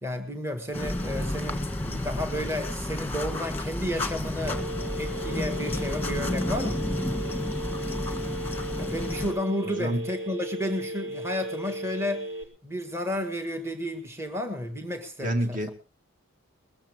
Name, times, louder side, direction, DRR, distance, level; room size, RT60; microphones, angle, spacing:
voice 1, 0.0-4.6 5.0-6.8 8.8-12.3 12.6-15.6, left 1 dB, 10° right, 6 dB, 1.6 m, -32 dB
sound 1, 0.7-9.3, left 1 dB, 10° left, 1.8 m, -31 dB
Telephone, 4.5-12.4, right 1 dB, 55° right, 2.3 m, -36 dB
voice 2, 9.6-10.0 15.2-15.7, right 1 dB, 40° right, 5 dB, 1.9 m, -29 dB
21.0 x 14.5 x 3.6 m, 0.35 s
head